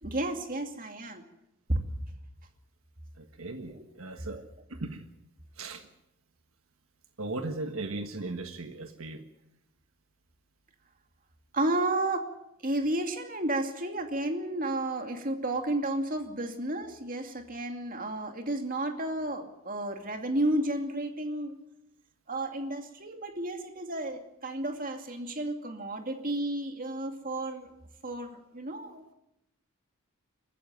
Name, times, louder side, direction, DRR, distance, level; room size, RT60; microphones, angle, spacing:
voice 1, 0.0-1.2 1.7-1.8 3.8-3.9 4.3-4.4 11.5-12.3 12.6-21.6 22.3-27.7 28.0-29.1, right 1 dB, 40° right, 5 dB, 2.4 m, -32 dB
voice 2, 3.2-4.4 4.7-5.0 5.5-5.9 7.2-9.2, right 2 dB, 75° right, 6 dB, 1.5 m, -37 dB
22.5 x 14.5 x 9.1 m, 0.85 s
head